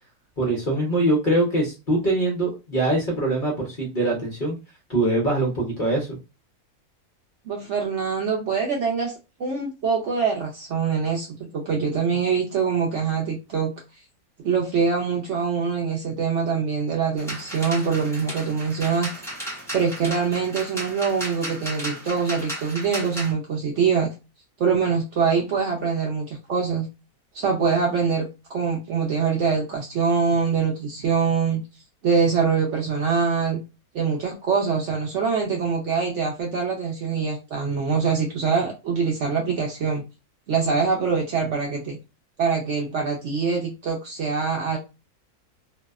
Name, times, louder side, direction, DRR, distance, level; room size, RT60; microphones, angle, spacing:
voice 1, 0.4-4.5 4.9-6.1, right 2 dB, 45° left, -2 dB, 0.8 m, -23 dB
voice 2, 7.5-9.1 9.4-13.7 14.4-19.1 19.7-24.1 24.6-26.9 27.3-31.6 32.0-33.6 33.9-40.0 40.5-42.0 42.4-44.8, right 5 dB, 65° right, -1 dB, 0.8 m, -24 dB
sound 1, 17.2-23.3, right 1 dB, 5° left, 0.3 m, -35 dB
2.6 x 2.1 x 2.3 m, 0.28 s
omnidirectional pair, 1.6 m